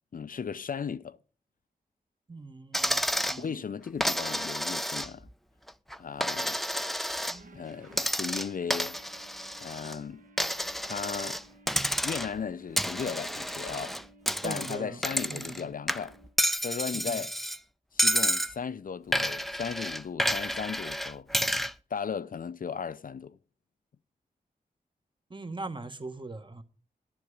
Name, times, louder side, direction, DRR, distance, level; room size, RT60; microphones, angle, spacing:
voice 1, 0.1-1.2 3.4-5.3 6.0-6.6 7.5-9.0 9.6-10.2 10.8-11.4 12.0-14.0 14.4-16.1 16.6-17.4 17.9-21.3 21.9-23.4, left 6 dB, 60° left, 0.5 m, -36 dB
voice 2, 2.3-3.0 3.3-3.6 14.4-15.0 15.3-15.7 16.9-17.2 25.3-26.6, right 3 dB, 30° right, 1.4 m, -40 dB
Coin (dropping), 2.7-3.4 4.0-5.3 5.7-7.4 7.9-10.0 10.4-11.4 11.7-12.4 12.8-15.6 15.9-17.6 18.0-18.5 19.1-21.7, equal, ahead, 0.5 m, -30 dB
sound 1, 7.2-16.7, right 2 dB, 55° right, 1.2 m, -56 dB
11.0 x 10.5 x 5.0 m
cardioid pair, 45°, 16 cm